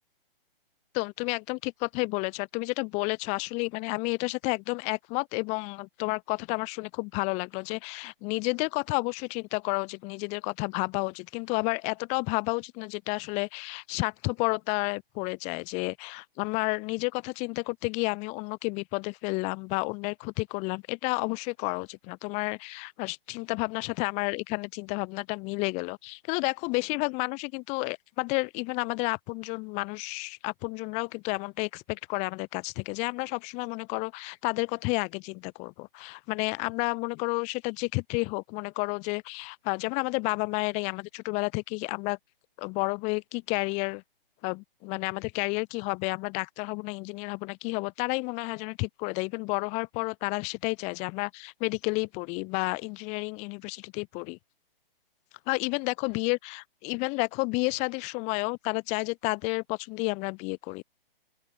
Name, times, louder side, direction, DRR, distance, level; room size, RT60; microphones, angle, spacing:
voice 1, 0.9-42.2 42.6-44.0 44.4-54.4 55.5-60.8, left 29 dB, 25° left, 1.4 m, -31 dB
open air
figure-of-eight pair, 130°, 29 cm